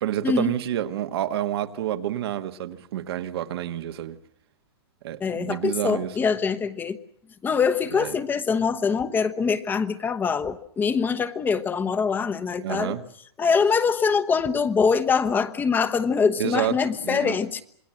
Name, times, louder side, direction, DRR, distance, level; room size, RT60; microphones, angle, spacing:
voice 1, 0.0-4.2 5.0-6.1 7.9-8.1 12.6-13.0 16.4-16.7 17.0-17.4, right 11 dB, 65° right, 1.6 m, -28 dB
voice 2, 5.2-7.0 7.4-13.0 13.4-17.6, left 5 dB, 15° left, 1.0 m, -24 dB
27.5 x 20.5 x 7.7 m
hypercardioid pair, 145°, 14 cm